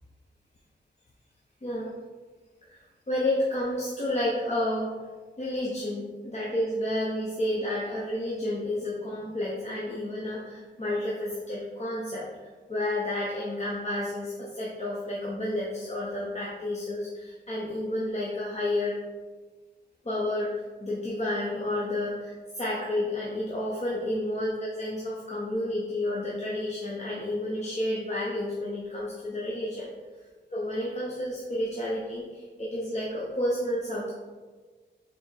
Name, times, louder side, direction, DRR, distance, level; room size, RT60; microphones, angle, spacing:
voice 1, 1.6-1.9 2.7-5.0 5.4-12.3 12.7-19.0 20.0-20.5 20.8-29.9 30.5-34.1, left 1 dB, 35° left, -5 dB, 0.9 m, -30 dB
4.8 x 4.2 x 4.5 m, 1.4 s
wide cardioid pair, 105°, 19 cm